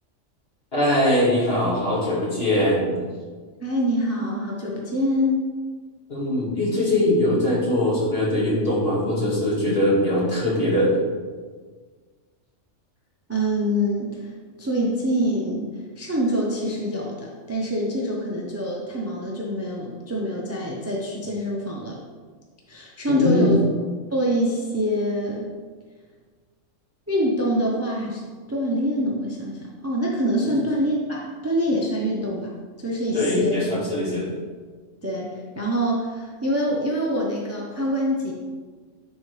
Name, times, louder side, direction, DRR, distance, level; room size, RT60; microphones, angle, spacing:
voice 1, 0.7-3.0 6.1-10.9 23.1-23.5 30.4-30.5 33.1-34.3, left 1 dB, 50° left, -6 dB, 2.2 m, -21 dB
voice 2, 3.6-5.4 13.3-14.3 14.6-15.7 16.0-22.0 22.7-23.6 24.1-25.5 27.1-28.2 28.5-32.5 32.8-33.6 35.0-38.3, equal, 15° right, -3 dB, 0.7 m, -25 dB
10.0 x 4.2 x 3.3 m, 1.5 s
omnidirectional pair, 1.3 m